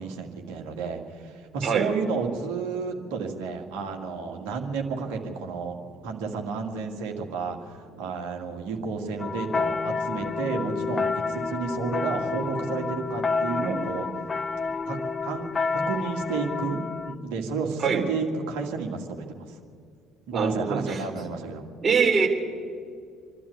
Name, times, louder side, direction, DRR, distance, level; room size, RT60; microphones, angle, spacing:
voice 1, 0.0-5.8 6.0-14.1 14.9-15.5 15.9-19.6 20.3-21.7, right 5 dB, 65° right, 2 dB, 2.1 m, -31 dB
sound 1, 9.2-17.1, left 4 dB, 30° left, 0.8 m, -29 dB
voice 2, 20.3-21.1 21.8-22.3, right 5 dB, 35° right, 2 dB, 3.6 m, -24 dB
26.0 x 12.5 x 8.3 m, 2.3 s
figure-of-eight pair, 55°, 0 cm